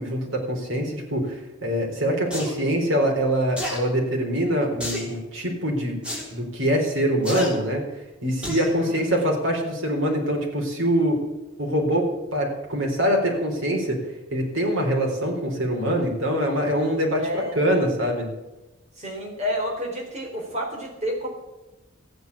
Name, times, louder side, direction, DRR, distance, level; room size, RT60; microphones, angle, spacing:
voice 1, 0.0-6.0 6.3-7.8 8.2-11.2 11.6-14.0 14.3-18.3, equal, 85° right, 0 dB, 4.0 m, -24 dB
sound 1, 2.3-2.5 3.6-3.8 4.8-5.1 6.0-6.2 7.2-7.5 8.4-8.7 9.2-9.3, equal, 5° right, 3.7 m, -30 dB
voice 2, 17.2-17.6 19.0-21.3, equal, 35° right, 0 dB, 3.8 m, -30 dB
14.5 x 9.3 x 8.3 m, 1.0 s
head